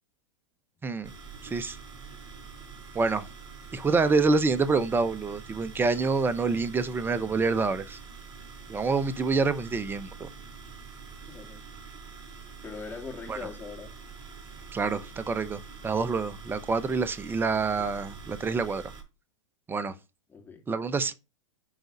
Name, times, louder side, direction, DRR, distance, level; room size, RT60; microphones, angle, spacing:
sound 1, 1.0-19.0, right 5 dB, 30° right, 4.5 m, -45 dB
voice 1, 1.4-1.8 2.9-3.3 3.7-8.0 8.7-10.3 13.3-13.4 14.7-18.8 19.7-19.9 20.7-21.1, right 4 dB, 10° right, 0.8 m, -27 dB
voice 2, 11.3-11.7 12.6-13.9 17.7-17.9 20.3-20.6, left 5 dB, 10° left, 2.6 m, -41 dB
9.9 x 3.9 x 5.3 m
hypercardioid pair, 110°, 17 cm